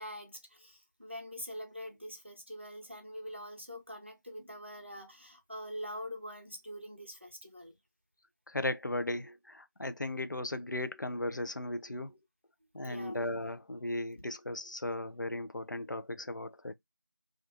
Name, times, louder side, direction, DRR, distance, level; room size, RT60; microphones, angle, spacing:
voice 1, 0.0-7.8 12.8-13.2, equal, 35° right, 0.5 m, -44 dB
voice 2, 8.5-12.1 12.7-16.7, left 1 dB, 70° left, 0.4 m, -36 dB
2.4 x 2.3 x 2.4 m
figure-of-eight pair, 180°, 11 cm